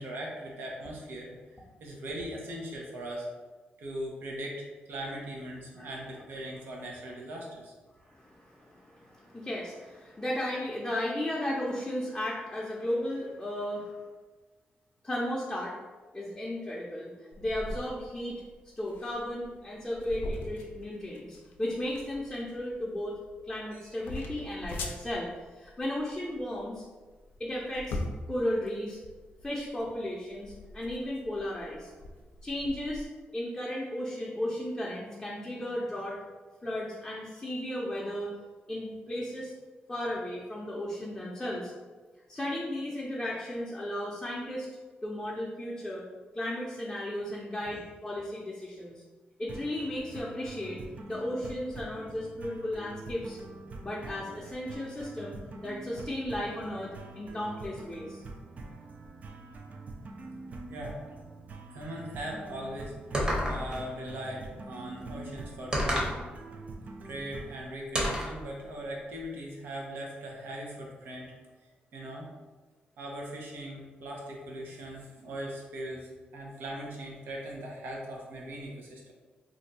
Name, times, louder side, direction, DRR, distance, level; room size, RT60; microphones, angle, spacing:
voice 1, 0.0-1.3 1.8-3.3 3.8-7.7 47.6-47.7 60.7-60.9 61.7-63.0 63.4-66.2 67.0-71.3 71.9-72.3 73.0-79.1, right 1 dB, 85° right, -1 dB, 0.7 m, -39 dB
voice 2, 8.0-14.0 15.0-15.7 16.1-17.1 17.4-18.4 18.8-23.1 23.4-26.8 27.4-28.0 28.3-29.0 29.4-31.9 32.4-33.1 33.3-36.2 36.6-38.3 38.7-39.5 39.9-41.7 42.3-44.7 45.0-46.0 46.3-49.0 49.4-53.4 53.8-55.4 55.6-58.2, left 1 dB, 15° left, -5 dB, 0.6 m, -35 dB
sound 1, 17.3-33.0, left 2 dB, 90° left, 0.4 m, -43 dB
sound 2, 49.5-67.6, right 3 dB, 45° right, 0.4 m, -45 dB
sound 3, 63.1-63.8 65.7-66.2 68.0-68.4, equal, 25° right, 0.9 m, -29 dB
2.6 x 2.2 x 4.0 m, 1.3 s
cardioid pair, 95°, 4 cm